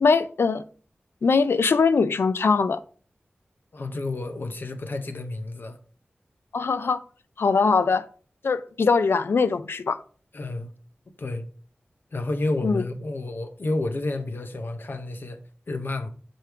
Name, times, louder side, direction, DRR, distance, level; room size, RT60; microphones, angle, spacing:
voice 1, 0.0-0.6 1.2-2.8 6.5-7.0 7.4-8.1 8.4-10.0 12.6-12.8, left 4 dB, 80° left, 0.3 m, -21 dB
voice 2, 3.7-5.8 10.3-10.7 11.2-11.5 12.1-15.4 15.7-16.1, left 2 dB, 60° left, 0.7 m, -30 dB
6.0 x 3.4 x 4.5 m
wide cardioid pair, 85°, 4 cm